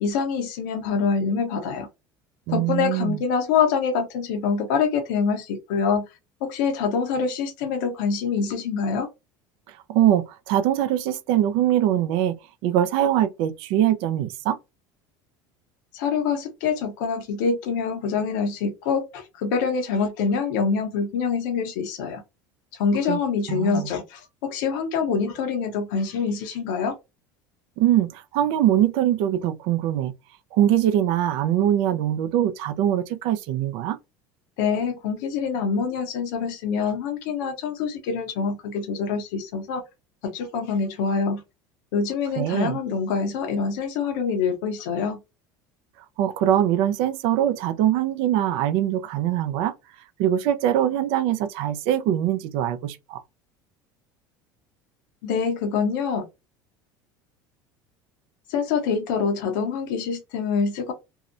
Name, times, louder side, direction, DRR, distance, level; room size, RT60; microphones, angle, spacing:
voice 1, 0.0-1.9 2.5-6.1 6.4-9.1 15.9-22.2 22.7-27.0 34.6-39.8 40.2-41.4 41.9-45.2 55.2-56.3 58.5-60.9, left 5 dB, 80° left, 0.7 m, -25 dB
voice 2, 2.5-3.2 9.9-12.3 12.6-14.6 23.1-23.2 23.5-23.9 27.8-30.1 30.6-34.0 42.4-42.8 46.2-49.7 50.2-53.2, right 11 dB, 70° right, 0.4 m, -22 dB
2.7 x 2.0 x 2.5 m
supercardioid pair, 95°, 10 cm